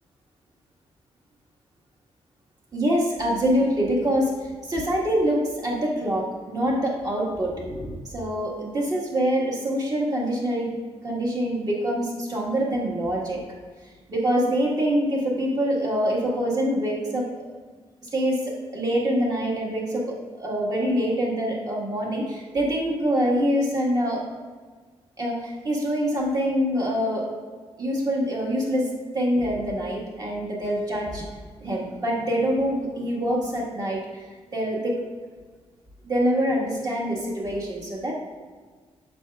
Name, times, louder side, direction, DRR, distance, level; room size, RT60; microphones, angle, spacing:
voice 1, 2.7-10.7 11.0-13.6 14.1-17.5 18.1-24.3 25.2-27.3 27.8-31.3 31.6-34.3 34.5-34.9 36.0-38.1, equal, 35° right, -3 dB, 1.7 m, -25 dB
8.7 x 6.8 x 2.4 m, 1.5 s
wide cardioid pair, 160°, 11 cm